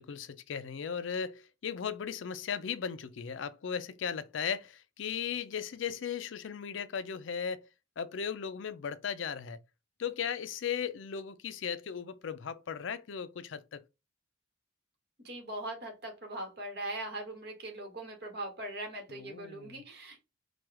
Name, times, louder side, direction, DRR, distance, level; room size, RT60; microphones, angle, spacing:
voice 1, 0.0-7.7 8.0-9.6 10.0-13.8 19.1-19.8, left 7 dB, 75° left, 0.4 m, -37 dB
voice 2, 15.2-20.2, right 1 dB, 55° right, 1.4 m, -40 dB
4.6 x 2.3 x 4.6 m
head